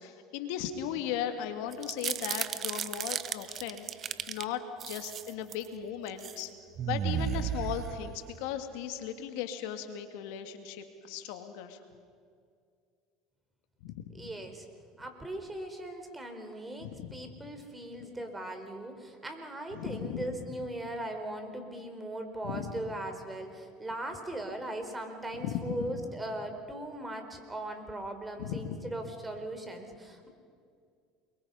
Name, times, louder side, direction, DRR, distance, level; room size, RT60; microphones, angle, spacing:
voice 1, 0.0-6.5 6.8-11.8 13.8-14.3 16.8-17.2 19.7-20.2 22.4-22.7 25.3-25.9 28.4-28.8, left 9 dB, 75° left, 7 dB, 2.1 m, -37 dB
sound 1, 1.7-4.4 4.8-5.7 6.1-6.4 6.8-8.4, right 9 dB, 45° right, 1.1 m, -34 dB
voice 2, 14.1-14.6 15.0-30.3, right 1 dB, 15° right, 5 dB, 4.5 m, -39 dB
29.0 x 23.0 x 5.7 m, 2.2 s
hypercardioid pair, 85°, 0 cm